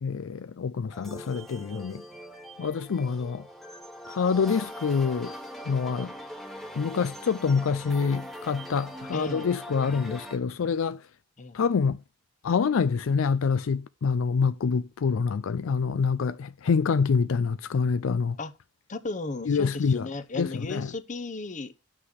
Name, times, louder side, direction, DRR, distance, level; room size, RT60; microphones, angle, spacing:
voice 1, 0.0-2.0 2.6-3.5 4.1-5.3 5.7-6.1 6.7-11.1 11.5-12.0 12.4-18.4 19.5-20.1 20.4-20.9, left 5 dB, 85° left, 0.4 m, -26 dB
sound 1, 0.9-10.4, equal, ahead, 1.1 m, -41 dB
voice 2, 9.1-9.6 9.9-10.1 11.4-11.6 18.4-18.5 18.9-21.8, left 3 dB, 40° left, 0.8 m, -35 dB
7.8 x 6.1 x 6.3 m
head